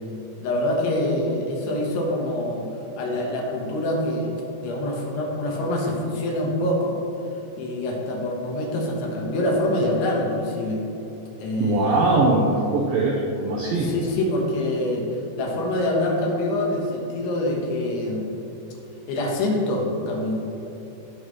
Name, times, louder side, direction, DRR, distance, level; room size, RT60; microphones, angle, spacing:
voice 1, 0.4-2.7 3.0-4.3 4.6-7.0 7.6-10.8 11.4-12.0 13.8-18.4 19.1-20.4, left 1 dB, 70° left, -1 dB, 3.1 m, -25 dB
voice 2, 11.6-13.9, right 2 dB, 90° right, -2 dB, 2.0 m, -21 dB
17.5 x 5.8 x 3.2 m, 2.9 s
omnidirectional pair, 5.2 m